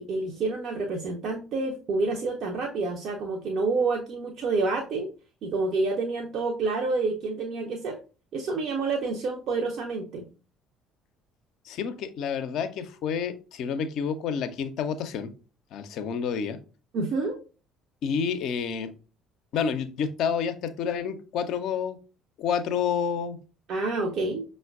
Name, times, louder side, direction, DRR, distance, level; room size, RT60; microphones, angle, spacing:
voice 1, 0.0-5.1 5.4-8.0 8.3-10.2 16.9-17.4 23.7-24.4, right 3 dB, 55° right, 2 dB, 0.5 m, -28 dB
voice 2, 11.7-15.3 15.7-16.6 18.0-18.9 19.5-22.0 22.4-23.4, left 7 dB, 55° left, 10 dB, 0.4 m, -29 dB
5.5 x 2.1 x 2.3 m, 0.35 s
figure-of-eight pair, 55°, 0 cm